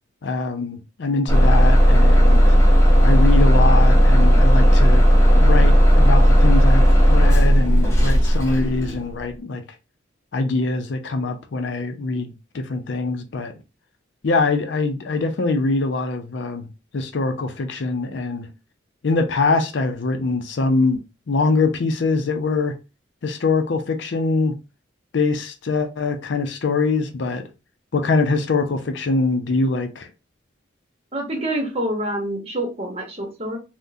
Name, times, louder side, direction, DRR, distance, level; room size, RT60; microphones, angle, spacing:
voice 1, 0.2-2.5 3.0-5.0 5.3-9.6 10.3-13.5 14.2-16.7 16.9-18.5 19.0-21.0 21.3-22.7 23.2-24.5 25.1-27.4 27.9-30.1, left 3 dB, 65° left, 0.5 m, -23 dB
Bus / Engine starting, 1.3-9.0, equal, 15° left, 0.6 m, -14 dB
voice 2, 31.1-33.6, right 1 dB, 30° right, 0.9 m, -26 dB
3.6 x 2.1 x 2.6 m
head